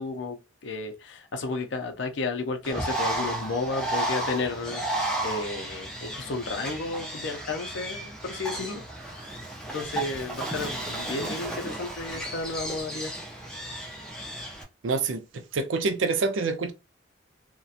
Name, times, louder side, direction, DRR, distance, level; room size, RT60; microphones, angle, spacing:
voice 1, 0.0-8.8 9.7-13.2, left 3 dB, 65° left, 0.5 m, -32 dB
Bird, 2.6-14.6, right 1 dB, 5° left, 0.4 m, -33 dB
voice 2, 14.8-15.2 15.5-16.7, right 4 dB, 75° right, 0.4 m, -26 dB
2.7 x 2.1 x 2.4 m
head